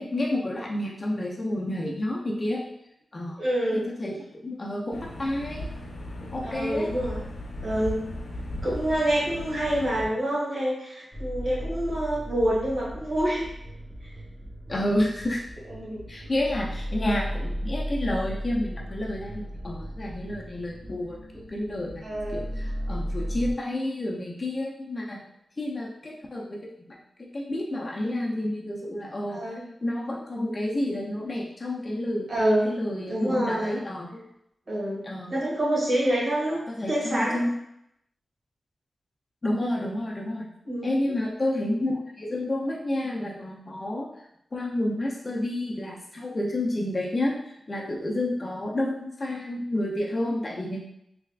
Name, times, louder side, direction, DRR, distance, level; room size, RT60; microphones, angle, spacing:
voice 1, 0.0-2.7 3.1-3.4 3.7-5.7 6.2-7.0 14.7-15.4 16.1-22.0 22.3-25.2 25.6-29.4 29.8-32.3 32.6-34.3 35.0-35.3 36.7-37.5 39.4-40.5 40.8-41.9 42.2-44.1 44.5-50.8, left 1 dB, 35° left, -2 dB, 0.5 m, -30 dB
voice 2, 3.4-3.9 6.4-7.2 7.6-8.1 8.6-13.5 15.7-16.0 22.0-22.5 29.3-29.6 32.3-32.8 33.1-33.8 34.7-36.6 36.9-37.4 40.7-41.3, right 1 dB, 55° right, -6 dB, 1.5 m, -27 dB
sound 1, 4.9-10.1, left 1 dB, 75° left, 0.6 m, -37 dB
sound 2, 11.1-23.5, equal, 20° right, 0.9 m, -35 dB
3.4 x 3.3 x 2.3 m, 0.78 s
wide cardioid pair, 130°, 0 cm